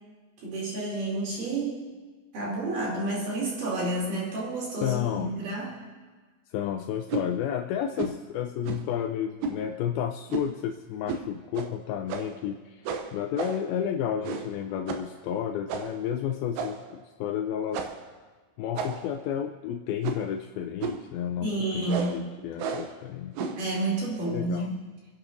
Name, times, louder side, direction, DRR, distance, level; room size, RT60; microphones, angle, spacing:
voice 1, 0.4-1.8 2.3-5.8 21.4-22.3 23.6-24.8, right 2 dB, 55° right, -4 dB, 4.5 m, -30 dB
voice 2, 4.8-5.4 6.5-17.8 18.6-23.4 24.2-24.7, left 9 dB, 85° left, 5 dB, 2.2 m, -31 dB
sound 1, 7.1-7.3 8.0-8.2 8.6-8.9 9.4-9.6 10.3-10.6 11.1-11.3 11.5-11.7 12.1-12.4 12.9-13.7 14.2-14.6 14.9-15.1 15.7-16.0 16.5-16.9 17.7-18.1 18.8-19.2 20.0-20.3 20.8-21.1 21.9-22.2 22.6-23.0 23.4-23.7, right 5 dB, 85° right, 3.0 m, -33 dB
30.0 x 10.5 x 2.7 m, 1.4 s
omnidirectional pair, 4.7 m